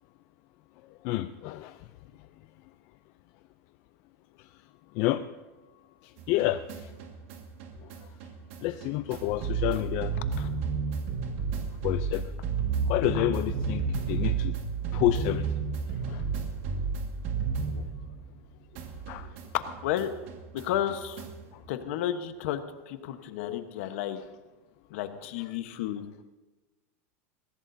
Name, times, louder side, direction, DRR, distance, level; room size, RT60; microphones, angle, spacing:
voice 1, 1.0-1.8 5.0-5.2 6.3-6.9 8.6-10.1 11.8-12.2 12.9-14.5 14.9-15.5 16.1-16.2 17.7-17.9 19.1-19.3 23.4-23.6, left 16 dB, 45° left, 9 dB, 0.5 m, -29 dB
sound 1, 6.2-18.5 18.7-21.5, right 5 dB, 60° right, 1.9 m, -32 dB
voice 2, 20.5-21.2 21.7-24.2 24.9-26.0, left 11 dB, 65° left, 9 dB, 1.2 m, -32 dB
22.5 x 15.5 x 2.7 m, 1.2 s
supercardioid pair, 155°, 7 cm